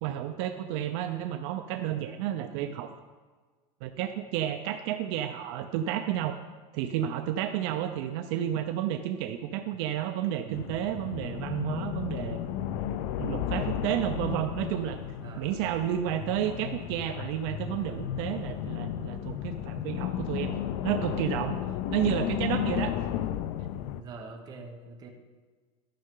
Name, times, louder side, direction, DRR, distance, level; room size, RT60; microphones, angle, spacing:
voice 1, 0.0-2.9 3.8-6.4 6.7-12.4 13.2-15.0 15.4-21.6 21.9-23.0, right 11 dB, 65° right, 7 dB, 0.5 m, -31 dB
sound 1, 10.5-24.0, left 10 dB, 65° left, 0.5 m, -33 dB
voice 2, 15.2-15.6 24.0-25.1, right 3 dB, 30° right, 2 dB, 1.1 m, -44 dB
12.5 x 6.5 x 3.8 m, 1.4 s
cardioid pair, 165°, 15 cm